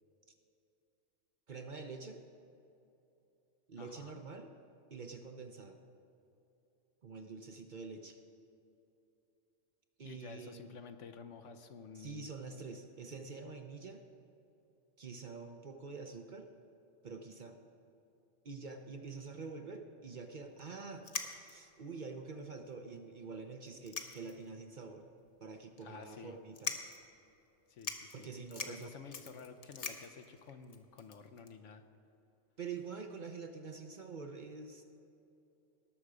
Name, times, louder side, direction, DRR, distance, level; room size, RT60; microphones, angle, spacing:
voice 1, 1.5-2.2 3.7-4.5 4.9-5.8 7.0-8.2 10.0-10.8 11.9-14.0 15.0-16.5 17.0-17.6 18.4-21.1 21.5-25.1 25.4-26.8 28.1-28.9 32.6-34.8, right 4 dB, 45° right, 5 dB, 0.7 m, -46 dB
voice 2, 3.8-4.2 10.0-12.3 25.8-26.4 27.7-28.3 28.6-31.8, left 5 dB, 75° left, 7 dB, 1.1 m, -51 dB
sound 1, 20.6-20.7 21.0-21.7 22.4-22.5 22.7-22.8 23.7-24.5 24.9-25.0 25.8-26.0 26.5-27.1 27.5-27.6 27.8-31.5, left 4 dB, 35° left, 0.8 m, -43 dB
18.5 x 6.6 x 4.9 m, 2.9 s
omnidirectional pair, 1.3 m